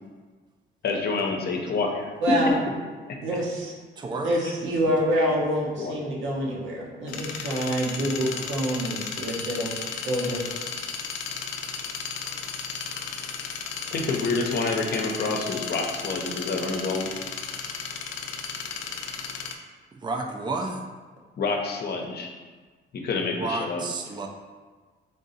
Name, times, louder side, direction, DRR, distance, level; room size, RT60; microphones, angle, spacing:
voice 1, 0.8-2.1 3.1-3.2 4.4-4.5 5.8-5.9 13.9-17.2 21.4-22.3 22.9-23.8, left 3 dB, 55° left, 1 dB, 0.7 m, -28 dB
voice 2, 2.2-2.5 3.2-3.7 4.2-9.7 10.0-10.4, equal, 75° right, -3 dB, 1.1 m, -26 dB
voice 3, 4.0-4.3 19.9-20.8 23.4-24.3, right 3 dB, 25° right, 3 dB, 0.4 m, -31 dB
sound 1, 7.1-19.5, left 6 dB, 90° left, 0.4 m, -34 dB
3.6 x 2.7 x 4.0 m, 1.4 s
cardioid pair, 90°, 20 cm